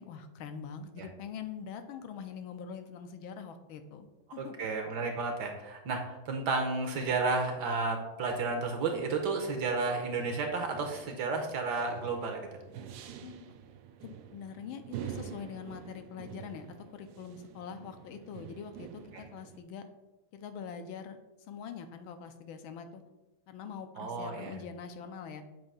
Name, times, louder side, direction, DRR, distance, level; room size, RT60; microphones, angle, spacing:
voice 1, 0.0-4.6 13.2-13.5 14.0-19.8 20.3-21.2 21.5-23.0 23.5-25.4, left 6 dB, 80° left, 8 dB, 1.4 m, -44 dB
voice 2, 4.4-12.4 19.1-19.2 24.0-24.6, right 3 dB, 65° right, 4 dB, 1.1 m, -32 dB
sound 1, 8.1-19.6, right 9 dB, 90° right, 0.8 m, -47 dB
7.6 x 2.7 x 5.4 m, 1.0 s
omnidirectional pair, 2.3 m